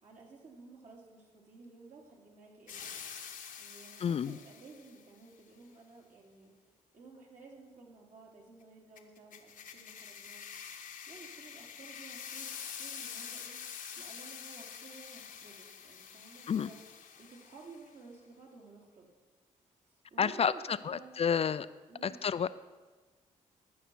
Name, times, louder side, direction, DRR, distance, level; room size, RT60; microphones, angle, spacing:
voice 1, 0.0-2.9 3.6-6.5 6.9-10.5 11.1-13.6 14.0-16.8 17.2-19.1 19.8-21.1 21.9-22.2, right 3 dB, 60° right, -1 dB, 2.9 m, -54 dB
sound 1, 2.7-5.0 9.0-17.9, left 7 dB, 65° left, 1.0 m, -46 dB
voice 2, 4.0-4.4 16.5-16.7 20.2-21.7 22.0-22.5, left 7 dB, 45° left, 15 dB, 0.4 m, -30 dB
14.0 x 5.6 x 6.1 m, 1.3 s
supercardioid pair, 55°, 15 cm